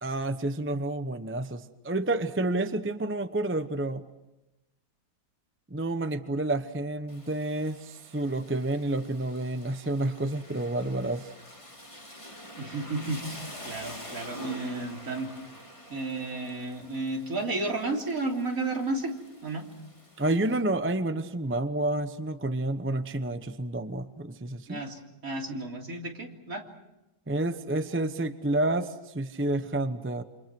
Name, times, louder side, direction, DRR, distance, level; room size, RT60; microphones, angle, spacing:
voice 1, 0.0-4.0 5.7-11.3 20.2-24.8 27.3-30.2, right 2 dB, 15° right, 10 dB, 0.5 m, -29 dB
Rain, 7.1-20.6, equal, 15° left, 2.4 m, -47 dB
voice 2, 12.6-15.3 15.9-19.1 19.4-19.6 24.7-26.7, right 2 dB, 50° right, 1 dB, 3.7 m, -32 dB
28.5 x 26.5 x 6.1 m, 0.96 s
omnidirectional pair, 1.9 m